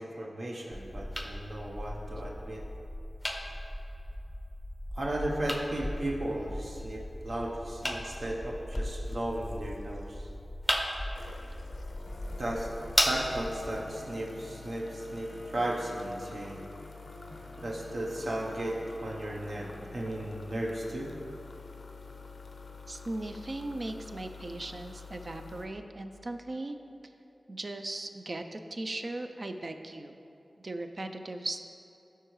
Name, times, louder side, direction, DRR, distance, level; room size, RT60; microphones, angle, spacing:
voice 1, 0.0-2.7 4.9-10.3 12.4-12.7 13.0-16.7 17.6-21.1, right 1 dB, 60° right, -3 dB, 0.7 m, -35 dB
sound 1, 0.7-13.7, left 1 dB, 10° left, 0.6 m, -36 dB
sound 2, 8.2-8.3 8.7-10.3 11.1-25.7, left 4 dB, 70° left, 0.5 m, -48 dB
sound 3, 12.1-20.1, equal, 5° right, 1.0 m, -51 dB
voice 2, 22.9-26.8 27.5-30.2 30.6-31.6, right 2 dB, 45° right, 6 dB, 0.3 m, -38 dB
12.5 x 4.5 x 3.1 m, 2.9 s
wide cardioid pair, 100°, 0 cm